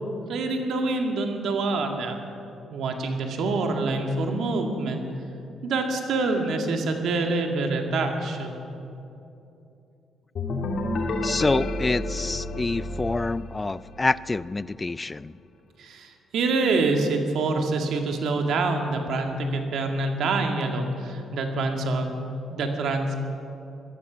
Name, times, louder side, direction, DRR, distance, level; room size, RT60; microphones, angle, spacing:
voice 1, 0.3-2.2 2.7-5.0 5.6-8.5 15.8-22.1 22.5-23.2, right 3 dB, 75° right, 4 dB, 2.0 m, -26 dB
sound 1, 10.3-14.1, left 2 dB, 60° left, 1.9 m, -30 dB
voice 2, 11.2-15.3, left 3 dB, 20° left, 18 dB, 0.3 m, -27 dB
18.5 x 12.5 x 6.2 m, 2.7 s
cardioid pair, 95°, 0 cm